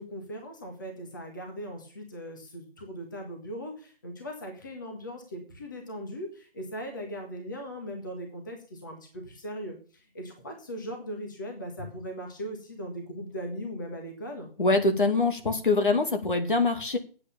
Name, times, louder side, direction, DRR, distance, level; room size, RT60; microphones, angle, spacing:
voice 1, 0.0-14.5, equal, 20° left, 3 dB, 1.7 m, -39 dB
voice 2, 14.6-17.0, left 3 dB, 55° left, 5 dB, 2.5 m, -24 dB
8.4 x 8.1 x 7.2 m, 0.40 s
figure-of-eight pair, 175°, 30 cm